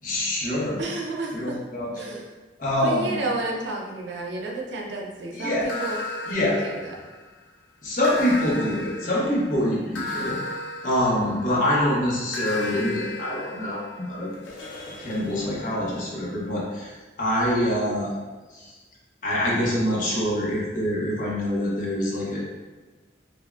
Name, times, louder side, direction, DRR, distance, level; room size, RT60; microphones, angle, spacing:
voice 1, 0.0-0.8 1.3-2.2 2.6-3.2 5.3-5.7 6.3-6.6 7.8-10.4 10.8-14.3 15.0-18.1 18.5-18.8 19.2-22.4, left 1 dB, 45° left, -5 dB, 0.8 m, -25 dB
voice 2, 0.8-1.6 2.0-2.3 2.8-6.0 6.3-6.4 6.6-6.9, right 2 dB, 75° right, -1 dB, 0.6 m, -31 dB
sound 1, 5.7-7.4 8.0-11.7 12.3-16.1, left 2 dB, 90° left, 0.6 m, -35 dB
5.0 x 2.1 x 2.4 m, 1.3 s
head